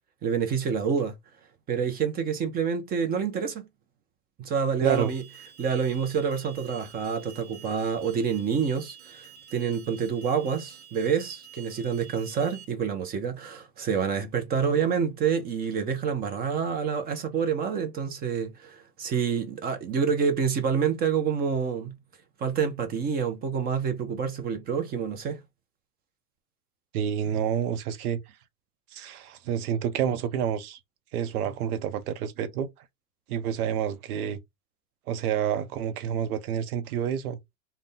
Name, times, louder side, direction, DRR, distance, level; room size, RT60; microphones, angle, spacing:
voice 1, 0.2-1.1 1.7-3.7 4.4-5.2 5.6-21.9 22.4-25.4, right 6 dB, 20° right, 0.5 m, -27 dB
Alarm, 4.8-12.6, right 8 dB, 50° right, 1.1 m, -49 dB
voice 2, 4.8-5.1 26.9-28.2 28.9-30.8 31.1-32.7 33.3-34.4 35.1-37.4, right 8 dB, 70° right, 0.7 m, -28 dB
2.4 x 2.2 x 3.7 m
hypercardioid pair, 105°, 46 cm